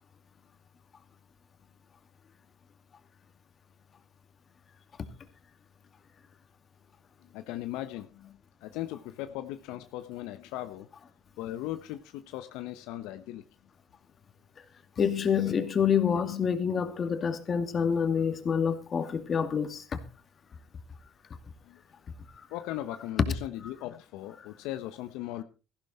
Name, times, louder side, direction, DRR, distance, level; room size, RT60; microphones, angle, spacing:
voice 1, 7.3-10.9 11.4-13.4 21.7-21.8 22.5-25.4, left 14 dB, 75° left, 0.9 m, -38 dB
voice 2, 15.0-20.0 23.6-23.7, left 7 dB, 40° left, 2.4 m, -27 dB
15.0 x 12.0 x 4.4 m
supercardioid pair, 85°, 0 cm